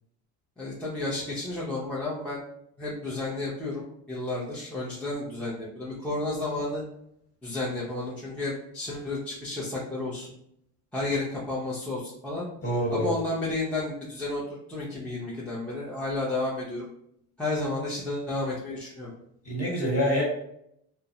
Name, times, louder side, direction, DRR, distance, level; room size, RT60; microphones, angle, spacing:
voice 1, 0.6-2.4 2.8-6.8 7.4-10.3 10.9-12.5 12.9-16.9 17.4-19.1, left 2 dB, 5° left, -7 dB, 0.6 m, -32 dB
voice 2, 12.6-13.1 19.4-20.2, equal, 30° left, -3 dB, 1.4 m, -26 dB
2.3 x 2.0 x 2.8 m, 0.74 s
supercardioid pair, 80°, 45 cm